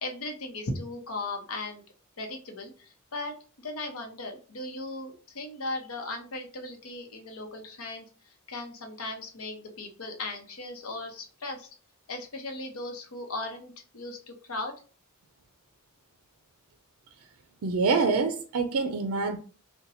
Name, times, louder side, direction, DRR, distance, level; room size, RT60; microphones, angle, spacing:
voice 1, 0.0-1.8 2.2-8.1 8.5-11.7 12.1-14.7, left 2 dB, 70° left, 0.8 m, -37 dB
voice 2, 17.6-19.4, right 4 dB, 65° right, 0.4 m, -26 dB
2.8 x 2.2 x 4.0 m
head